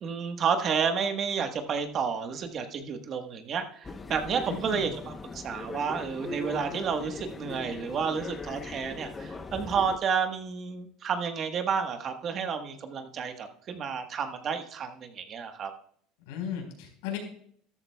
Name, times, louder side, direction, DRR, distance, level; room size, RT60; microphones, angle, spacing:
voice 1, 0.0-15.7, right 6 dB, 40° right, 6 dB, 1.3 m, -31 dB
sound 1, 3.8-10.0, left 3 dB, 20° left, 0.9 m, -40 dB
voice 2, 4.5-4.9 16.3-17.2, left 8 dB, 85° left, 2 dB, 4.4 m, -35 dB
13.5 x 12.5 x 2.3 m, 0.62 s
supercardioid pair, 130°, 0 cm